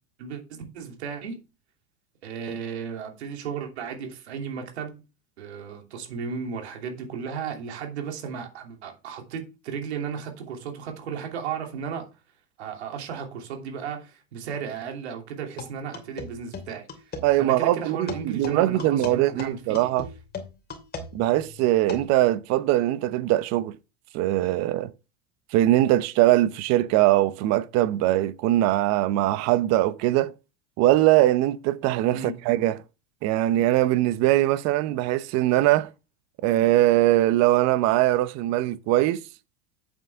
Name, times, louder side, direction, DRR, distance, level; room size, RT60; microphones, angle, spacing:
voice 1, 0.2-1.4 2.2-5.0 5.4-12.1 12.6-17.1 17.4-19.9 32.1-32.3, right 6 dB, 85° right, 2.9 m, -35 dB
sound 1, 15.6-17.3 18.1-22.2, left 4 dB, 30° left, 2.7 m, -37 dB
voice 2, 17.2-20.1 21.1-23.8 24.1-24.9 25.5-30.3 30.8-32.8 33.2-35.9 36.4-39.2, right 15 dB, 55° right, 0.8 m, -21 dB
8.3 x 7.6 x 3.6 m
hypercardioid pair, 105°, 32 cm